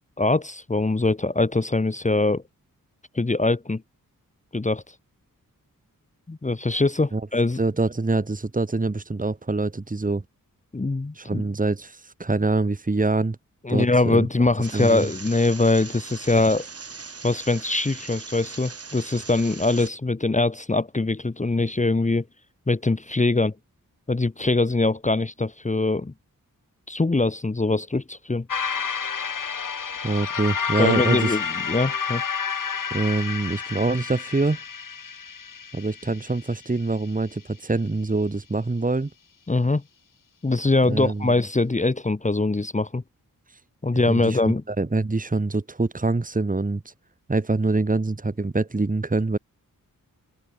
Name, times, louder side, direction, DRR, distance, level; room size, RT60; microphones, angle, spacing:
voice 1, 0.2-2.4 3.1-3.8 4.5-4.8 6.3-7.6 10.7-11.4 13.6-16.7 17.2-22.2 22.7-23.5 24.1-26.1 26.9-28.5 30.8-32.2 39.5-39.8 40.4-43.0 43.8-44.6, left 2 dB, 20° left, 1.3 m, -22 dB
voice 2, 7.6-10.2 11.1-13.4 13.7-14.3 14.7-15.1 30.0-31.4 32.9-34.6 35.7-39.1 40.8-41.3 44.1-46.9 47.3-49.4, right 3 dB, 25° right, 2.6 m, -25 dB
sound 1, 14.6-19.9, right 4 dB, 45° right, 2.9 m, -40 dB
sound 2, 28.5-37.0, left 6 dB, 70° left, 3.2 m, -30 dB
wide cardioid pair, 130°, 34 cm